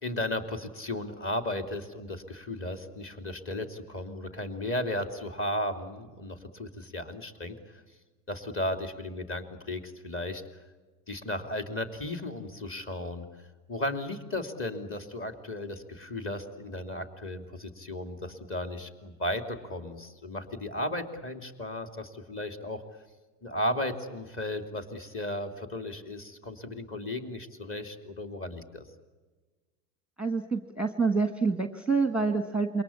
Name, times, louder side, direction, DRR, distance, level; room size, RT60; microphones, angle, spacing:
voice 1, 0.0-7.6 8.3-10.4 11.1-13.2 13.7-22.8 23.4-28.9, left 1 dB, 25° left, 6 dB, 3.0 m, -35 dB
voice 2, 30.2-32.8, right 4 dB, 5° right, 9 dB, 1.3 m, -27 dB
27.5 x 23.0 x 8.7 m, 1.3 s
figure-of-eight pair, 80°, 46 cm